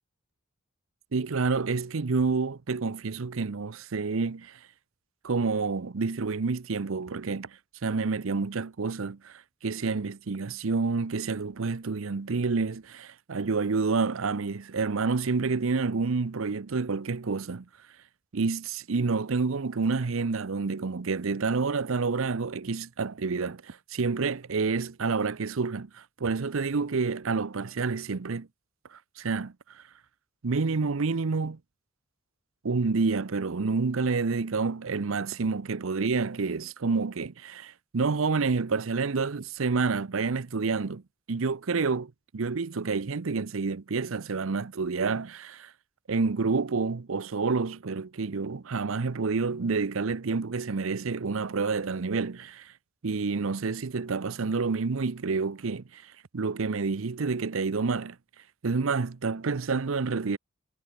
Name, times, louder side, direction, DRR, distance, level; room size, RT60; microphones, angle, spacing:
voice 1, 1.1-4.6 5.2-17.7 18.3-28.5 28.9-29.8 30.4-31.6 32.6-41.0 41.3-45.7 46.1-52.7 53.0-58.2 58.6-60.4, right 4 dB, 70° right, 0.7 m, -29 dB
head